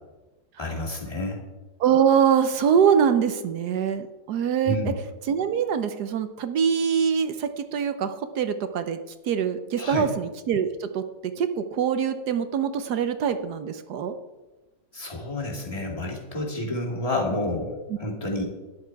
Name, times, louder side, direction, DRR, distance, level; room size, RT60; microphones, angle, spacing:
voice 1, 0.6-1.4 4.6-4.9 9.8-10.1 14.9-18.4, left 1 dB, 20° left, -2 dB, 2.5 m, -29 dB
voice 2, 1.8-4.8 5.3-9.0 9.2-14.1, right 7 dB, 65° right, 10 dB, 1.2 m, -24 dB
12.5 x 11.0 x 4.7 m, 1.1 s
omnidirectional pair, 2.0 m